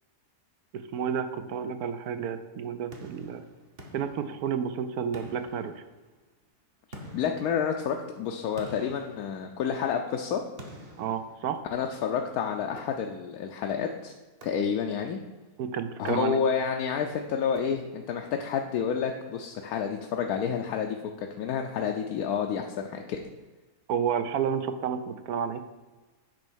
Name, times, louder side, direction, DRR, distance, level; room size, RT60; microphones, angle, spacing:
voice 1, 0.9-3.4 3.9-5.7 11.0-11.6 15.6-16.4 23.9-25.6, right 7 dB, 75° right, 9 dB, 1.0 m, -30 dB
sound 1, 2.9-4.7 5.1-6.3 6.9-9.9 10.6-12.0 12.8-13.4 14.4-15.1 15.9-16.7 17.5-18.2, equal, 40° right, 1.1 m, -49 dB
voice 2, 7.1-10.4 11.7-14.1 14.4-15.2 16.0-23.2, left 7 dB, 75° left, 3 dB, 1.0 m, -29 dB
8.9 x 3.2 x 6.2 m, 1.2 s
omnidirectional pair, 1.6 m